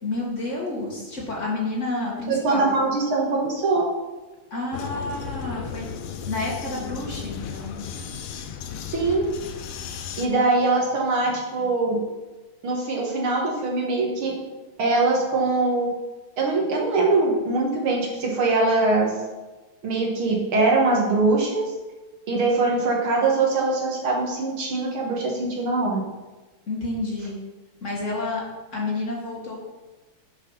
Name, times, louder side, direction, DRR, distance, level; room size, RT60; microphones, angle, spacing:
voice 1, 0.0-2.8 4.5-5.9 6.3-7.8 26.7-27.4 27.8-28.4 28.7-29.7, left 2 dB, 40° left, -3 dB, 1.9 m, -29 dB
voice 2, 2.4-3.8 8.9-9.3 10.2-12.0 12.6-14.3 14.8-15.9 16.4-19.1 19.8-21.7 22.3-26.0, right 3 dB, 75° right, -1 dB, 2.5 m, -22 dB
Vehicle, 4.7-10.3, left 7 dB, 85° left, 1.6 m, -35 dB
7.0 x 6.0 x 5.6 m, 1.1 s
omnidirectional pair, 2.3 m